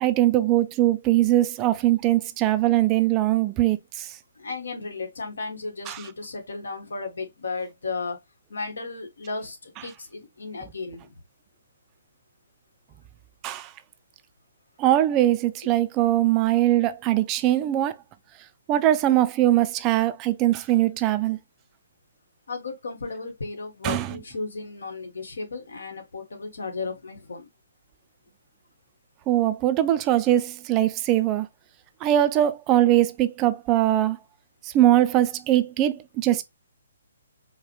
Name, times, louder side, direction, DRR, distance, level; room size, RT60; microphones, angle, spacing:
voice 1, 0.0-4.2 5.9-6.1 13.4-13.7 14.8-18.0 18.7-21.4 23.8-24.2 29.3-31.5 32.0-34.2 34.6-36.4, right 13 dB, 20° right, 0.3 m, -21 dB
voice 2, 4.4-8.2 8.5-9.6 9.8-11.0 22.5-27.4, left 3 dB, 85° left, 1.3 m, -34 dB
4.7 x 2.2 x 3.0 m
hypercardioid pair, 160°, 0 cm